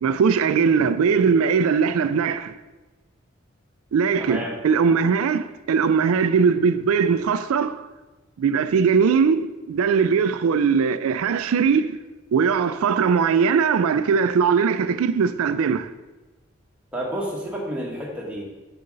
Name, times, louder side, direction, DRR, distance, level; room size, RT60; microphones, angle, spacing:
voice 1, 0.0-2.5 3.9-7.8 8.4-12.0 12.3-15.9, right 6 dB, 90° right, 0.3 m, -20 dB
voice 2, 4.2-4.5 16.9-18.4, equal, 5° right, 1.3 m, -30 dB
6.8 x 6.6 x 3.9 m
head